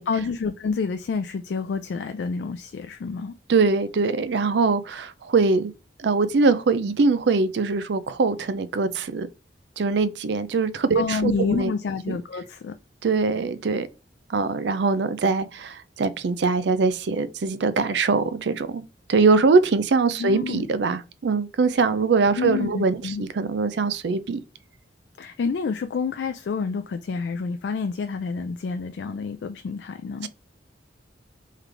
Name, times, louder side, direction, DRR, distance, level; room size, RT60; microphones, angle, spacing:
voice 1, 0.1-3.4 11.0-12.8 20.2-20.7 22.3-23.2 25.2-30.3, left 5 dB, 65° left, 0.3 m, -28 dB
voice 2, 3.5-5.7 6.0-9.3 9.8-11.7 12.1-12.2 13.0-13.9 14.3-18.8 19.1-24.4 30.2-30.3, right 4 dB, 70° right, 0.4 m, -22 dB
3.7 x 3.2 x 3.3 m
head